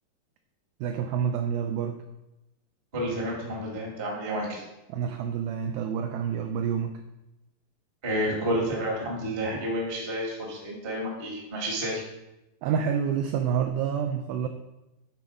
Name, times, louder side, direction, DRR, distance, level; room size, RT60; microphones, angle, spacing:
voice 1, 0.8-2.0 4.9-6.9 12.6-14.5, right 7 dB, 85° right, 6 dB, 2.0 m, -28 dB
voice 2, 2.9-4.6 8.0-12.0, equal, 45° right, -3 dB, 0.7 m, -30 dB
9.5 x 3.9 x 4.9 m, 0.95 s
omnidirectional pair, 4.6 m